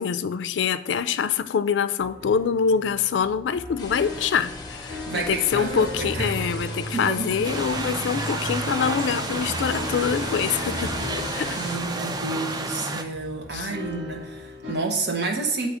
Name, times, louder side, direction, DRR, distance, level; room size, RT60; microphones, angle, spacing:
voice 1, 0.0-11.6 13.5-13.7, left 6 dB, 85° left, 14 dB, 0.3 m, -25 dB
sound 1, 2.0-14.7, left 1 dB, 90° right, 1.5 m, -36 dB
sound 2, 3.8-11.8, left 3 dB, 20° left, 1.0 m, -38 dB
voice 2, 5.1-6.3 6.9-7.3 11.6-15.7, right 3 dB, 65° right, 2 dB, 1.1 m, -29 dB
sound 3, 7.4-13.0, right 3 dB, 20° right, 0.4 m, -31 dB
8.0 x 2.8 x 4.9 m, 0.87 s
head